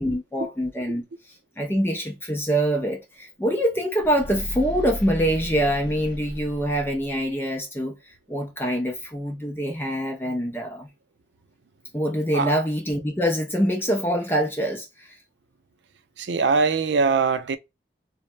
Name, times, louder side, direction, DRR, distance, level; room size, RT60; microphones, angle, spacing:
voice 1, 0.0-10.9 11.9-15.2, equal, 10° left, 0.4 m, -25 dB
sound 1, 4.0-7.3, left 1 dB, 65° left, 0.6 m, -35 dB
voice 2, 16.2-17.6, right 4 dB, 85° right, 0.4 m, -22 dB
3.2 x 2.1 x 2.5 m
head